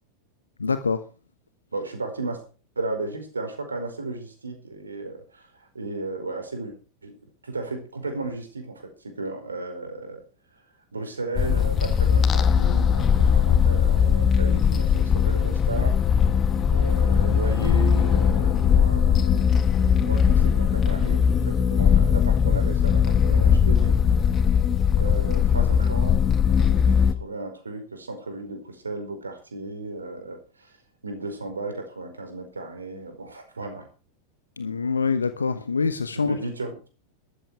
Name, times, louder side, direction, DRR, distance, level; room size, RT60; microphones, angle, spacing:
voice 1, 0.6-1.0 34.6-36.4, left 5 dB, 75° left, 11 dB, 1.0 m, -25 dB
voice 2, 1.7-2.4 2.7-5.5 5.7-6.7 7.0-7.2 7.4-10.2 10.9-16.0 16.7-19.5 20.0-24.0 24.9-30.8 31.0-33.9 36.1-36.9, right 2 dB, 75° right, 6 dB, 4.8 m, -34 dB
sound 1, 11.4-27.1, left 7 dB, 25° left, 1.5 m, -20 dB
13.5 x 13.5 x 4.8 m, 0.36 s
figure-of-eight pair, 90°, 0 cm